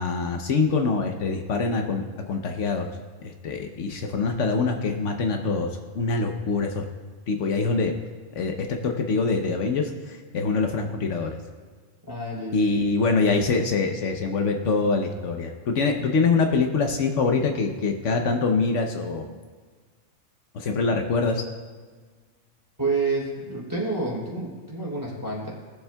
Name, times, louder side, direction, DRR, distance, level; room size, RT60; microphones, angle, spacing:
voice 1, 0.0-2.9 3.2-6.8 7.3-7.9 8.3-11.4 12.5-19.3 20.5-21.4, left 4 dB, 75° left, 4 dB, 1.1 m, -24 dB
voice 2, 12.1-12.9 22.8-25.5, right 3 dB, 15° right, -5 dB, 3.1 m, -29 dB
19.0 x 7.1 x 2.2 m, 1.5 s
omnidirectional pair, 1.3 m